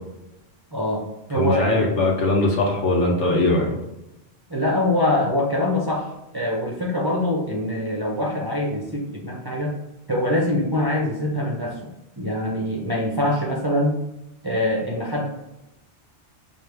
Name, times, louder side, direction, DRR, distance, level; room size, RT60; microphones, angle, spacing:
voice 1, 0.7-2.0 4.5-9.8 10.1-11.8 12.2-14.0 14.4-15.3, left 1 dB, 35° right, -3 dB, 0.4 m, -24 dB
voice 2, 1.3-3.7, left 2 dB, 85° left, -1 dB, 1.3 m, -20 dB
4.6 x 2.5 x 3.4 m, 0.93 s
omnidirectional pair, 1.2 m